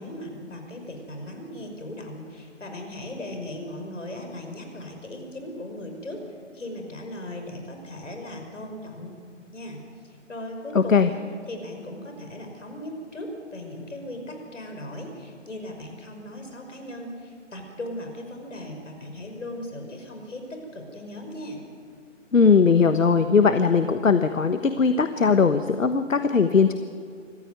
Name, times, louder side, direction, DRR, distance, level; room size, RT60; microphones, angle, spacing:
voice 1, 0.0-6.2 6.5-9.2 9.5-9.8 10.0-11.2 11.5-21.6, left 1 dB, 70° left, 4 dB, 5.8 m, -38 dB
voice 2, 10.7-11.1 22.3-26.7, left 5 dB, 85° left, 10 dB, 1.3 m, -19 dB
25.5 x 14.5 x 9.5 m, 2.2 s
hypercardioid pair, 170°, 38 cm